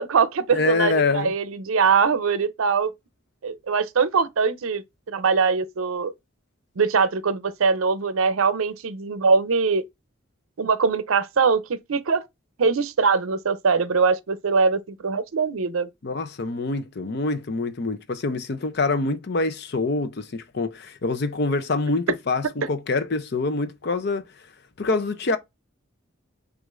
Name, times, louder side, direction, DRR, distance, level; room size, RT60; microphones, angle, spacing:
voice 1, 0.0-2.9 3.4-6.1 6.8-9.8 10.6-12.2 12.6-15.9, right 5 dB, 80° right, 0.6 m, -22 dB
voice 2, 0.5-1.3 16.0-24.3 24.8-25.4, left 3 dB, 50° left, 0.6 m, -25 dB
6.2 x 2.5 x 2.4 m
head